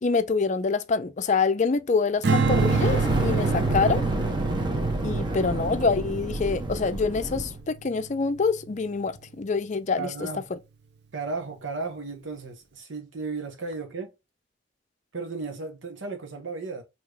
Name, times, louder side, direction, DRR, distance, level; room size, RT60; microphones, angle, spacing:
voice 1, 0.0-4.0 5.0-10.1, left 4 dB, 40° left, 0.4 m, -26 dB
Strum, 2.2-8.6, right 5 dB, 60° right, 0.6 m, -28 dB
Fire, 2.3-7.6, right 1 dB, 25° right, 0.9 m, -29 dB
Explosion, 2.7-7.5, equal, 20° left, 1.6 m, -36 dB
voice 2, 5.0-5.4 10.0-10.4 11.1-14.1 15.1-16.8, right 4 dB, 80° right, 0.9 m, -35 dB
4.8 x 2.8 x 2.3 m
head